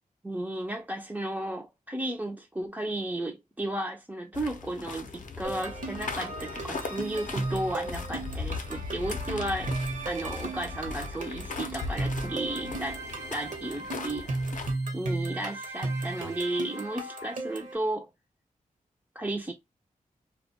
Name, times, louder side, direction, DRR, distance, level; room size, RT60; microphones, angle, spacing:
voice 1, 0.2-9.8 10.1-13.0 13.3-14.2 14.9-18.1 19.2-19.5, right 1 dB, 10° right, 0.4 m, -34 dB
sound 1, 4.3-14.7, left 4 dB, 65° left, 0.5 m, -38 dB
sound 2, 5.4-17.8, right 2 dB, 65° right, 0.7 m, -35 dB
2.2 x 2.2 x 2.6 m
wide cardioid pair, 80°, 14 cm